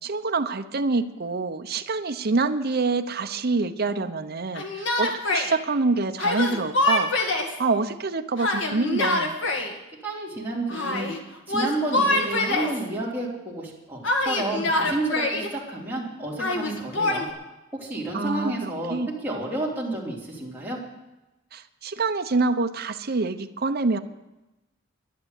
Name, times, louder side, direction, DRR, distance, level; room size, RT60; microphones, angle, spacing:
voice 1, 0.0-7.1 7.6-9.4 18.1-19.1 21.5-24.0, right 3 dB, 55° right, 7 dB, 0.8 m, -26 dB
Yell, 4.5-5.5 6.2-7.6 8.4-9.7 10.7-11.2 11.5-12.8 14.0-15.5 16.4-17.2, left 2 dB, 70° left, 2.1 m, -25 dB
voice 2, 10.0-11.1 11.5-17.3 17.7-19.0 19.2-20.8, right 2 dB, 10° right, -5 dB, 3.5 m, -30 dB
11.5 x 10.5 x 8.2 m, 1.0 s
head